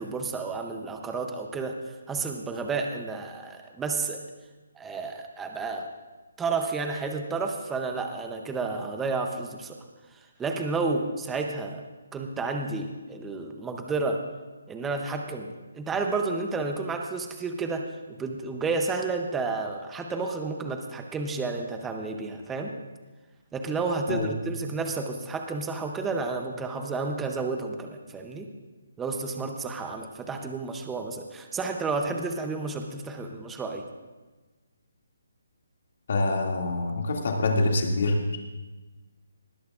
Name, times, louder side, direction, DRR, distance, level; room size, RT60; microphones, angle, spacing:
voice 1, 0.0-4.2 4.8-5.9 6.4-9.8 10.1-11.8 12.1-14.2 14.7-22.8 23.5-28.5 29.0-33.8, right 4 dB, 5° right, 4 dB, 0.6 m, -31 dB
voice 2, 36.1-38.4, left 2 dB, 45° left, 1 dB, 2.2 m, -25 dB
19.5 x 13.5 x 2.4 m, 1.2 s
hypercardioid pair, 175°, 0 cm